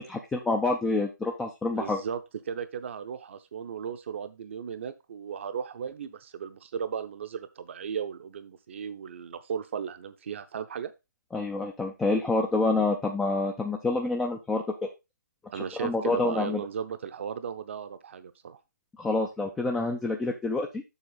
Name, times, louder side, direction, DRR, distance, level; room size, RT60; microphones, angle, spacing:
voice 1, 0.0-2.0 11.3-14.6 15.5-16.6 19.0-20.8, left 3 dB, 5° left, 1 dB, 0.3 m, -27 dB
voice 2, 1.7-2.2 2.4-10.9 15.5-18.6, right 7 dB, 40° right, 11 dB, 0.7 m, -36 dB
7.2 x 6.1 x 3.8 m, 0.24 s
figure-of-eight pair, 150°, 10 cm